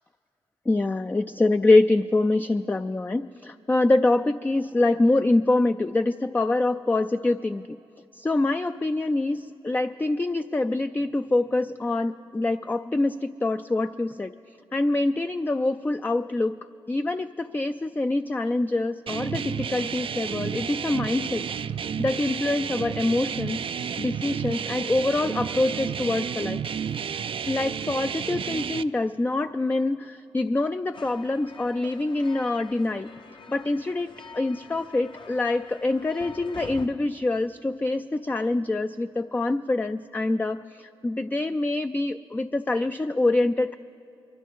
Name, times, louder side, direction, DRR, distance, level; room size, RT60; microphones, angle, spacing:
voice 1, 0.7-7.8 8.1-14.4 14.7-16.6 16.9-21.5 22.0-23.6 24.0-26.6 27.5-33.1 33.5-43.7, left 2 dB, 15° left, 9 dB, 0.3 m, -25 dB
sound 1, 19.1-28.8, right 7 dB, 55° right, 0.3 m, -31 dB
sound 2, 30.9-36.9, left 4 dB, 50° left, 0.8 m, -45 dB
23.0 x 13.0 x 3.7 m, 2.8 s
supercardioid pair, 45°, 11 cm